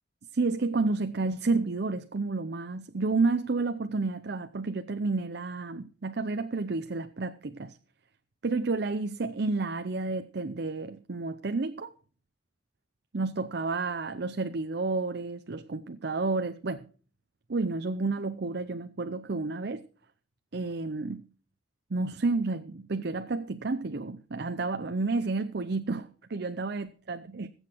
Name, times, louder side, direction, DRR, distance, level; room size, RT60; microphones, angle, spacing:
voice 1, 0.3-7.8 8.4-11.9 13.1-16.8 17.5-19.8 20.5-21.3 21.9-27.5, right 3 dB, 60° right, 0.6 m, -30 dB
20.0 x 8.2 x 4.5 m
head